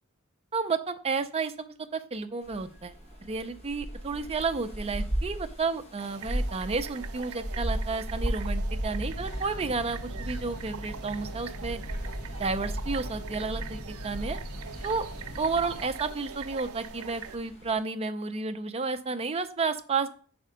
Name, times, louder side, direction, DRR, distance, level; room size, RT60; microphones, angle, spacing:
voice 1, 0.5-2.9 3.2-11.8 12.4-14.4 14.8-15.1 15.4-20.1, right 4 dB, 30° right, 8 dB, 0.5 m, -31 dB
sound 1, 2.4-17.8, equal, 30° left, 1.5 m, -36 dB
sound 2, 6.0-17.4, right 7 dB, 80° right, 0.5 m, -44 dB
sound 3, 9.0-15.9, equal, 55° left, 0.9 m, -41 dB
5.5 x 4.3 x 4.9 m, 0.42 s
head